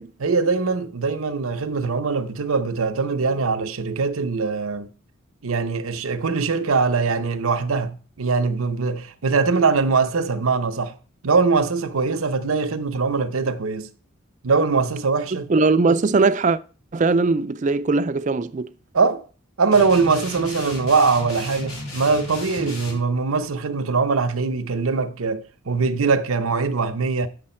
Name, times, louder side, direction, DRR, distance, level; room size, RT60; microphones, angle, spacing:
voice 1, 0.2-4.9 5.4-10.9 11.2-13.9 14.4-15.5 18.9-19.2 19.6-27.3, right 4 dB, 85° right, 0.8 m, -22 dB
voice 2, 15.5-16.6 16.9-18.7, right 3 dB, 35° right, 0.4 m, -20 dB
sound 1, 19.7-23.0, left 1 dB, 85° left, 3.5 m, -34 dB
8.7 x 6.5 x 4.3 m
head